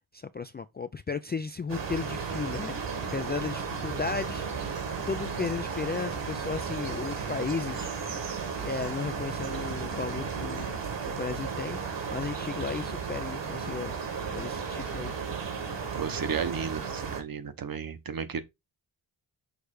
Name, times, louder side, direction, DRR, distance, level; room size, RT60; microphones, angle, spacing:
voice 1, 0.1-4.8 5.1-7.9 8.6-11.8 12.1-13.9 14.3-15.1, left 5 dB, 25° left, 0.3 m, -35 dB
sound 1, 1.7-17.2, right 5 dB, 60° right, 1.9 m, -34 dB
voice 2, 15.9-18.4, right 6 dB, 45° right, 1.1 m, -33 dB
6.4 x 3.2 x 4.8 m
cardioid pair, 90°, 48 cm